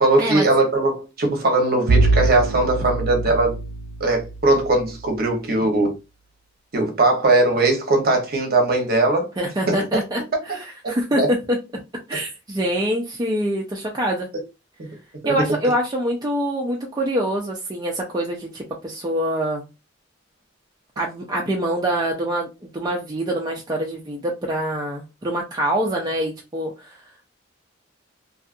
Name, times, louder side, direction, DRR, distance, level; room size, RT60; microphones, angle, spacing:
voice 1, 0.0-3.6 4.0-5.9 6.7-9.3 9.7-9.8 10.8-11.3 15.2-15.3, right 2 dB, 50° right, 0.8 m, -19 dB
Bowed string instrument, 1.9-4.9, right 2 dB, 90° right, 0.4 m, -23 dB
voice 2, 9.4-11.6 12.1-14.3 15.2-19.6 21.0-22.5 22.7-27.0, right 1 dB, 20° right, 0.4 m, -25 dB
2.6 x 2.4 x 2.4 m
head